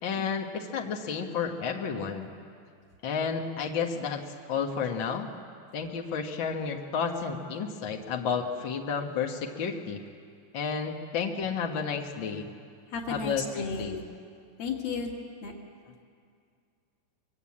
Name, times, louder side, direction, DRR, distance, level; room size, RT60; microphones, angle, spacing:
voice 1, 0.0-2.3 3.0-4.2 4.5-5.3 5.7-10.0 10.5-12.5 13.1-14.0, left 6 dB, 85° left, 3 dB, 1.0 m, -31 dB
voice 2, 12.9-14.0 14.6-15.1 15.4-15.5, left 4 dB, 70° left, -3 dB, 3.8 m, -33 dB
24.0 x 22.5 x 8.7 m, 2.3 s
omnidirectional pair, 4.5 m